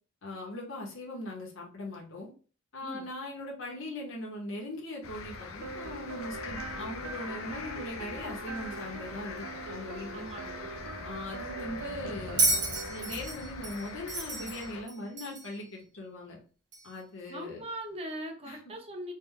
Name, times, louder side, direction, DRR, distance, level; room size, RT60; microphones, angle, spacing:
voice 1, 0.2-2.3 2.7-10.2 11.0-12.5 12.8-16.4 16.8-17.6 18.4-18.6, left 1 dB, 70° left, -2 dB, 0.9 m, -40 dB
sound 1, 5.0-14.8, left 4 dB, 90° left, 0.6 m, -42 dB
sound 2, 5.6-13.2, right 5 dB, 70° right, 0.3 m, -43 dB
voice 2, 10.1-10.7 17.3-19.1, right 1 dB, 30° right, 1 dB, 0.6 m, -40 dB
Bell, 12.4-15.6 16.7-16.8, right 3 dB, 55° right, 1.4 m, -31 dB
3.2 x 2.2 x 3.6 m, 0.38 s
head